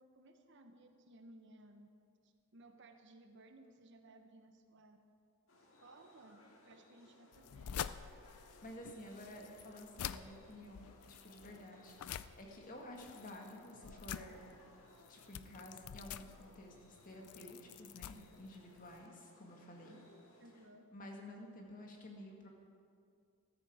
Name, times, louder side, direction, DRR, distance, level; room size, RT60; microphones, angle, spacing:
voice 1, 0.0-1.9 2.2-5.0 5.8-6.4 6.7-7.9 20.4-20.8, right 2 dB, 55° right, 6 dB, 1.0 m, -60 dB
sound 1, 5.5-20.7, left 1 dB, 65° left, 1.9 m, -63 dB
sound 2, 7.3-19.1, left 9 dB, 85° left, 0.4 m, -48 dB
voice 2, 8.6-14.4 15.1-20.0 20.9-22.5, left 1 dB, 35° left, 1 dB, 1.9 m, -52 dB
14.0 x 13.5 x 4.9 m, 2.2 s
head